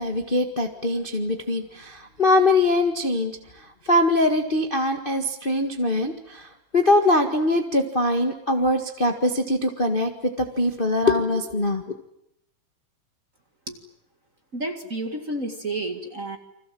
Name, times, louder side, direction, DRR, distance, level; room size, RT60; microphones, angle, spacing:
voice 1, 0.0-6.5 6.7-11.8, left 1 dB, 40° left, 5 dB, 0.7 m, -22 dB
voice 2, 14.5-16.4, right 2 dB, 30° right, 6 dB, 1.8 m, -30 dB
30.0 x 25.5 x 7.7 m, 0.79 s
omnidirectional pair, 4.3 m